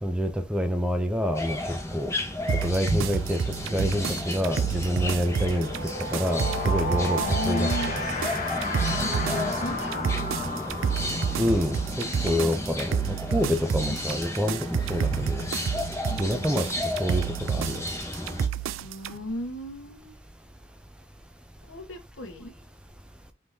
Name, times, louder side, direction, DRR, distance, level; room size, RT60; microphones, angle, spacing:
voice 1, 0.0-2.1 2.6-3.4 3.7-5.7 6.1-7.2 7.5-7.7 11.4-15.5 16.2-16.7 17.0-17.8, equal, 5° right, 0.4 m, -27 dB
sound 1, 1.3-18.5, left 1 dB, 15° left, 0.9 m, -33 dB
sound 2, 2.5-19.1, right 7 dB, 75° right, 0.3 m, -30 dB
sound 3, 3.5-3.7 3.9-14.5, left 2 dB, 40° left, 1.0 m, -34 dB
voice 2, 7.2-7.9 9.0-10.5 13.8-13.9 16.1-16.8 18.8-20.1 21.6-22.5, left 1 dB, 75° left, 1.2 m, -36 dB
4.6 x 3.6 x 2.7 m
head